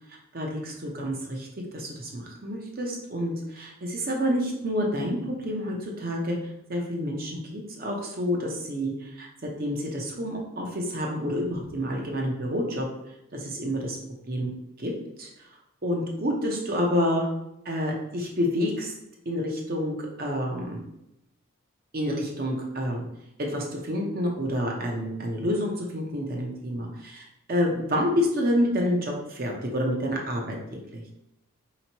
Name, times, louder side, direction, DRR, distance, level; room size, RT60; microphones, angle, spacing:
voice 1, 0.3-1.5 1.7-6.4 6.7-12.9 13.3-14.0 14.3-14.5 14.8-14.9 15.2-15.3 15.8-17.3 17.7-18.9 19.3-20.8 21.9-23.0 23.4-31.0, equal, 45° right, 0 dB, 0.7 m, -28 dB
4.3 x 2.9 x 2.9 m, 0.85 s
head